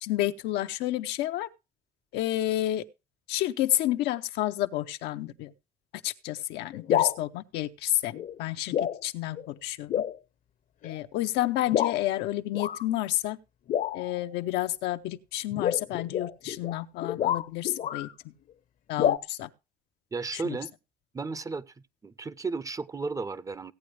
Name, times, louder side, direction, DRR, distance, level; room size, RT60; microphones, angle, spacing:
voice 1, 0.0-1.5 2.1-2.8 3.3-5.5 6.0-10.0 10.8-13.4 13.9-18.1 18.9-19.5 20.3-20.6, left 14 dB, 90° left, 0.7 m, -30 dB
sound 1, 6.7-7.2 8.1-8.4 8.7-9.0 9.4-9.5 9.9-10.2 10.8-11.0 11.7-12.0 12.5-12.8 13.7-14.2 15.5-18.1 19.0-19.2, left 10 dB, 50° left, 0.7 m, -28 dB
voice 2, 20.1-20.7 21.1-21.7 22.0-23.7, right 4 dB, 20° right, 0.5 m, -34 dB
16.0 x 8.6 x 3.3 m
cardioid pair, 110°, 17 cm